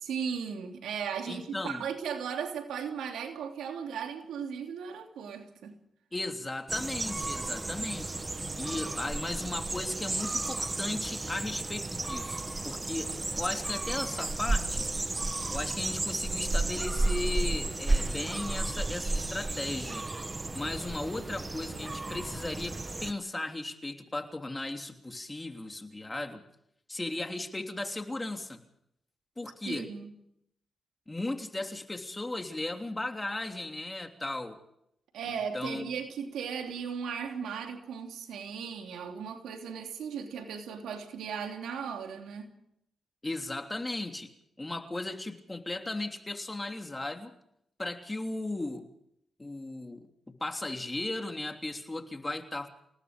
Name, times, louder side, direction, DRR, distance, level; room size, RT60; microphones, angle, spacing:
voice 1, 0.0-5.8 29.6-30.1 35.1-42.6, right 7 dB, 90° right, 3.0 m, -37 dB
voice 2, 1.3-1.8 6.1-8.1 8.6-14.9 15.5-20.1 20.5-22.8 23.0-26.4 26.9-28.6 29.4-29.9 31.1-34.6 35.3-35.9 43.2-44.3 44.6-47.3 47.8-48.9 49.4-50.1 50.4-52.7, left 2 dB, 20° left, 3.2 m, -36 dB
sound 1, 6.7-23.1, right 2 dB, 25° right, 1.2 m, -33 dB
28.5 x 18.5 x 5.3 m
cardioid pair, 65°, 0 cm